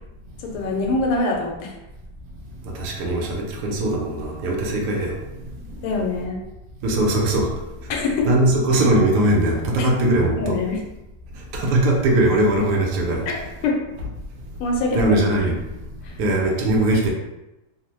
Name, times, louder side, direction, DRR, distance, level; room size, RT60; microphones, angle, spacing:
voice 1, 0.4-1.8 5.8-6.4 7.9-8.3 9.8-9.9 10.4-10.8 13.3-13.8 14.6-15.5 16.0-16.1, left 3 dB, 90° left, 0 dB, 1.5 m, -24 dB
voice 2, 2.8-5.1 6.8-7.5 8.2-10.6 11.5-13.2 14.9-15.6 16.2-17.1, right 1 dB, 70° right, -1 dB, 1.0 m, -20 dB
3.4 x 2.0 x 2.9 m, 0.96 s
omnidirectional pair, 2.3 m